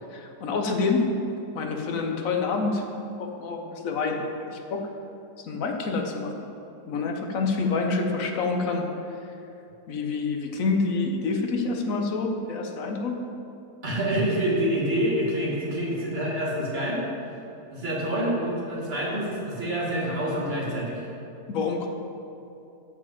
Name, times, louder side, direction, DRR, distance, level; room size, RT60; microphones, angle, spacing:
voice 1, 0.1-1.1 1.5-2.8 3.2-4.8 5.4-6.3 6.9-8.8 9.9-13.2 21.5-21.9, left 4 dB, 60° left, 3 dB, 1.2 m, -27 dB
voice 2, 13.8-17.0 17.7-21.1, right 1 dB, 35° right, -5 dB, 2.0 m, -27 dB
8.5 x 4.8 x 7.4 m, 2.8 s
omnidirectional pair, 1.8 m